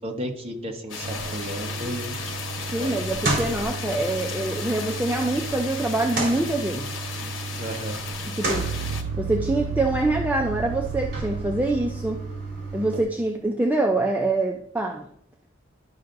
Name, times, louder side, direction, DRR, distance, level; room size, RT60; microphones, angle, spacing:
voice 1, 0.0-2.1 2.8-3.0 7.6-8.0, equal, 30° right, 2 dB, 1.1 m, -33 dB
sound 1, 0.9-9.0, left 5 dB, 70° left, 1.2 m, -35 dB
sound 2, 1.0-13.0, right 3 dB, 60° right, 3.4 m, -33 dB
voice 2, 2.7-7.0 8.3-8.7 9.2-12.2 12.7-15.1, right 2 dB, 10° right, 1 dB, 0.5 m, -25 dB
sound 3, 8.5-12.7, right 6 dB, 75° right, 0.4 m, -33 dB
12.0 x 5.6 x 2.6 m, 0.68 s
head